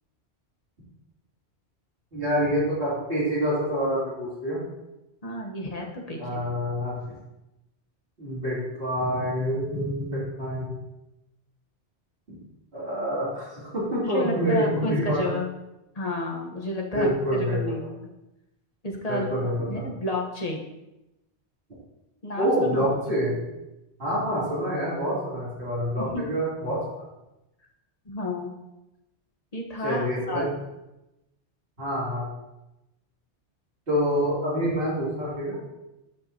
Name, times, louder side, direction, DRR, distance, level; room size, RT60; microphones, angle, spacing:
voice 1, 2.1-4.6 6.2-6.9 8.2-10.8 12.3-12.4 12.7-15.4 16.9-17.6 19.1-19.9 22.4-23.4 24.0-26.8 29.8-30.5 31.8-32.3 33.9-35.6, equal, 55° right, -12 dB, 3.3 m, -27 dB
voice 2, 5.2-6.4 14.0-15.5 15.9-17.8 18.8-19.3 19.7-20.6 22.2-22.9 26.0-26.2 28.0-28.5 29.5-30.5, left 1 dB, 35° left, 0 dB, 1.2 m, -31 dB
12.5 x 5.6 x 2.9 m, 0.95 s
omnidirectional pair, 1.2 m